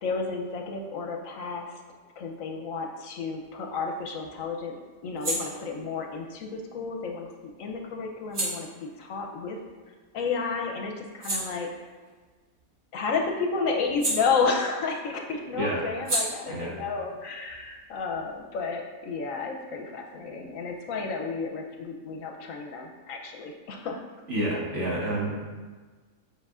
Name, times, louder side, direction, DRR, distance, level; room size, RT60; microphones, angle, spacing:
voice 1, 0.0-1.8 2.2-4.8 5.0-9.6 10.1-11.7 12.9-24.0, left 4 dB, 70° left, 2 dB, 1.0 m, -31 dB
sound 1, 3.4-10.3 10.7-14.9 15.2-18.6, right 1 dB, 85° right, 2.4 m, -37 dB
voice 2, 24.3-25.3, right 1 dB, 55° right, -4 dB, 1.6 m, -28 dB
7.8 x 5.2 x 2.4 m, 1.4 s
omnidirectional pair, 1.5 m